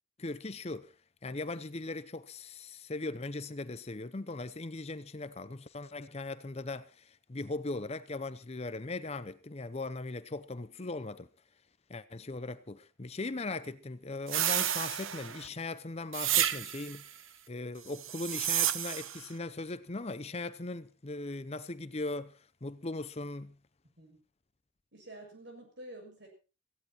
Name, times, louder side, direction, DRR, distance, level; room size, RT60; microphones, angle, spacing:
voice 1, 0.2-0.9 1.2-11.3 11.9-17.2 17.5-23.6, left 2 dB, 30° left, 0.7 m, -39 dB
sound 1, 14.3-15.5 16.1-17.0 18.0-19.2, right 11 dB, 80° right, 1.1 m, -31 dB
voice 2, 24.9-26.3, right 1 dB, 60° right, 7.1 m, -49 dB
17.0 x 16.0 x 4.4 m
head